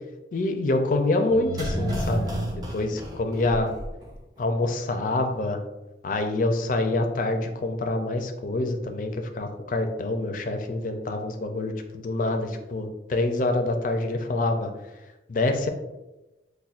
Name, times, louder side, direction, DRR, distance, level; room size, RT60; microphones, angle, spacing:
voice 1, 0.3-2.3 2.7-3.7 4.4-5.6 6.0-14.7 15.3-15.7, left 2 dB, 45° left, 5 dB, 0.4 m, -26 dB
sound 1, 1.3-4.1 4.4-4.5, equal, 20° right, 0.4 m, -30 dB
5.4 x 2.1 x 2.4 m, 1.0 s
head